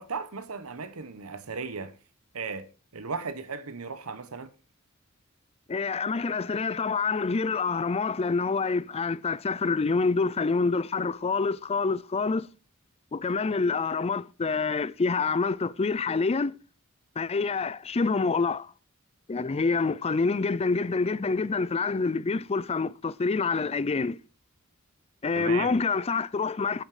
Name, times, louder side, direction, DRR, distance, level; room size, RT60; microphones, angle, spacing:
voice 1, 0.0-2.0 2.3-4.5 25.3-25.8, right 5 dB, 90° right, 1.0 m, -36 dB
voice 2, 5.7-12.5 13.1-16.5 17.2-18.7 19.3-24.2 25.2-26.8, left 4 dB, 30° left, 0.4 m, -27 dB
11.5 x 7.4 x 4.8 m
head